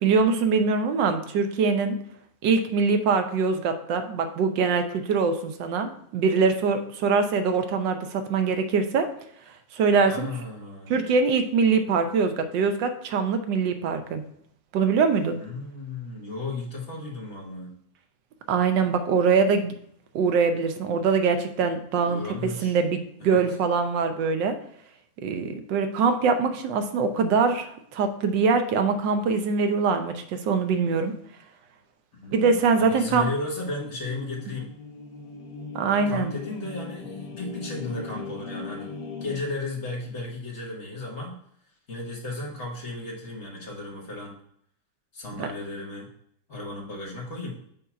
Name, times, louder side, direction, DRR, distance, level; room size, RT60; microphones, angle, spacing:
voice 1, 0.0-2.0 2.4-9.1 9.7-10.3 10.9-14.2 14.7-15.4 18.5-19.7 20.1-24.6 25.2-31.1 32.3-33.3 35.7-36.3 45.4-45.5, right 5 dB, 70° right, 7 dB, 1.3 m, -23 dB
voice 2, 10.0-11.0 15.3-17.7 22.1-22.7 23.2-23.4 32.2-34.7 35.9-38.9 39.2-41.3 41.9-44.3 45.1-46.1 46.5-47.5, left 2 dB, 40° left, -2 dB, 1.6 m, -34 dB
sound 1, 33.2-39.4, left 4 dB, 70° left, 1.4 m, -39 dB
7.3 x 2.8 x 5.6 m, 0.68 s
omnidirectional pair, 2.1 m